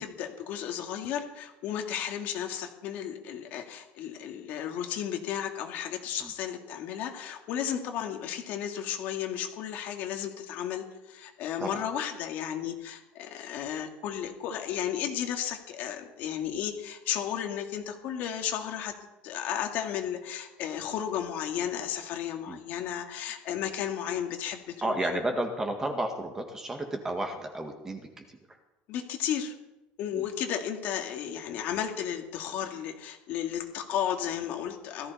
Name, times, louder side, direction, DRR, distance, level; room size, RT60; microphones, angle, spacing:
voice 1, 0.0-18.9 19.2-25.2 28.9-29.5 30.0-35.1, left 9 dB, 55° left, 4 dB, 2.1 m, -34 dB
voice 2, 24.8-28.6 30.1-30.3, right 1 dB, 15° right, 4 dB, 1.8 m, -32 dB
17.5 x 14.0 x 4.2 m, 1.0 s
cardioid pair, 155°, 4 cm